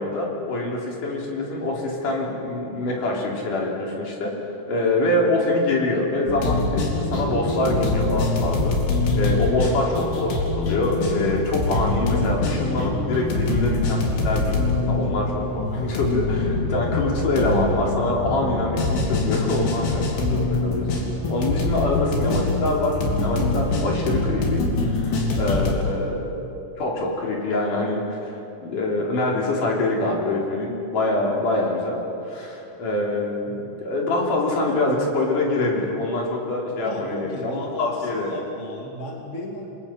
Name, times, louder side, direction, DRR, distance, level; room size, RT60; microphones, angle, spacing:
voice 1, 0.0-4.3 4.7-8.7 9.1-15.3 15.5-26.2 26.8-32.0 32.2-38.3, left 2 dB, 50° left, -2 dB, 4.7 m, -25 dB
sound 1, 6.3-25.7, left 2 dB, 80° left, 5.1 m, -24 dB
voice 2, 14.7-15.2 25.5-25.9 26.4-26.6 33.4-33.7 36.8-39.7, left 2 dB, 25° left, 0 dB, 2.0 m, -35 dB
28.0 x 24.0 x 5.9 m, 2.9 s
omnidirectional pair, 4.8 m